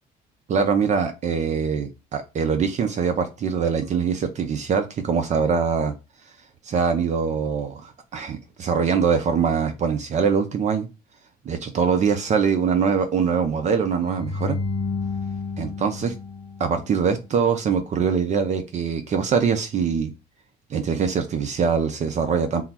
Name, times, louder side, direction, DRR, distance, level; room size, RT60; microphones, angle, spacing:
voice 1, 0.5-5.9 6.7-10.9 11.5-14.6 15.6-16.1 16.6-20.1 20.7-22.6, right 6 dB, 45° right, 7 dB, 0.5 m, -23 dB
sound 1, 14.0-17.2, left 4 dB, 25° left, 0.5 m, -31 dB
3.8 x 2.0 x 4.2 m, 0.27 s
cardioid pair, 110°, 17 cm